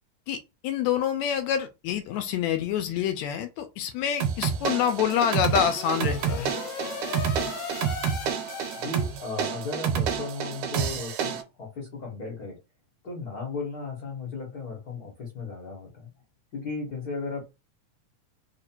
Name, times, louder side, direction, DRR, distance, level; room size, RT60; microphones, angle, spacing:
voice 1, 0.3-6.5, left 9 dB, 80° left, 1.8 m, -27 dB
sound 1, 4.2-11.4, right 8 dB, 85° right, 2.3 m, -29 dB
sound 2, 4.5-9.5, left 6 dB, 65° left, 1.8 m, -39 dB
voice 2, 8.7-12.6 13.0-16.1 16.5-17.4, left 3 dB, 45° left, 1.2 m, -35 dB
4.7 x 2.5 x 4.4 m
omnidirectional pair, 3.4 m